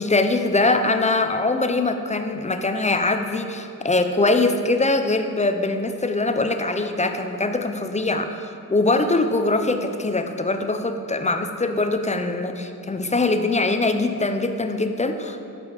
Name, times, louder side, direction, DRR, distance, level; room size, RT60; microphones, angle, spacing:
voice 1, 0.0-15.5, left 2 dB, 20° left, 7 dB, 0.4 m, -22 dB
11.5 x 5.0 x 4.9 m, 2.5 s
cardioid pair, 110°, 39 cm